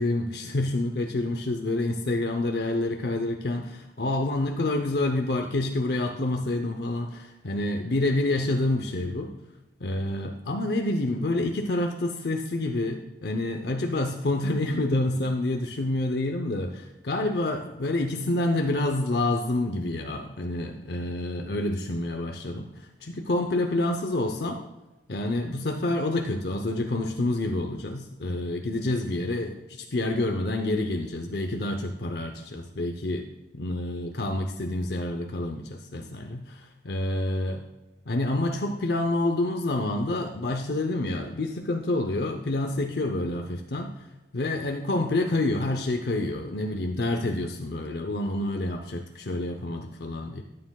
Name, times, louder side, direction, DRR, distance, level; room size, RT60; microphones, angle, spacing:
voice 1, 0.0-9.3 9.8-24.6 25.1-33.3 33.5-37.7 38.1-43.9 44.3-50.4, left 2 dB, 60° left, 4 dB, 0.7 m, -28 dB
13.5 x 8.6 x 2.3 m, 1.0 s
head